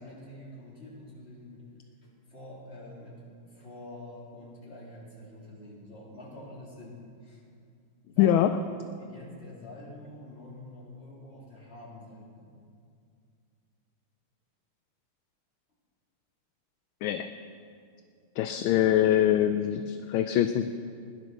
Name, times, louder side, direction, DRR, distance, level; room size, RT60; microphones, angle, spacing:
voice 1, 0.0-1.6 2.0-7.4 8.1-8.7 9.0-12.5, left 1 dB, 25° left, -6 dB, 3.6 m, -46 dB
voice 2, 8.2-8.6 17.0-17.3 18.4-20.7, left 11 dB, 75° left, 9 dB, 1.3 m, -23 dB
17.0 x 10.5 x 6.2 m, 2.3 s
omnidirectional pair, 2.4 m